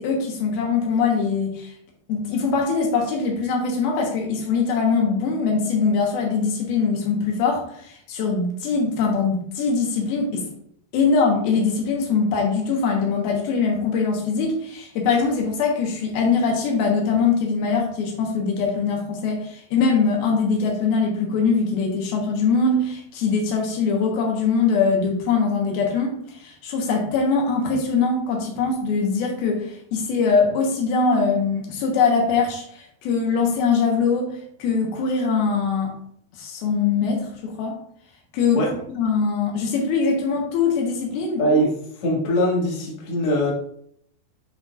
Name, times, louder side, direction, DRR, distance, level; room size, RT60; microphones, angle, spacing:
voice 1, 0.0-1.7 2.1-10.4 10.9-35.9 36.4-37.8 38.3-38.6 39.0-41.4, left 5 dB, 85° left, 0 dB, 3.0 m, -22 dB
voice 2, 41.4-43.5, equal, 45° left, -4 dB, 2.5 m, -22 dB
11.5 x 4.2 x 2.4 m, 0.66 s
omnidirectional pair, 4.2 m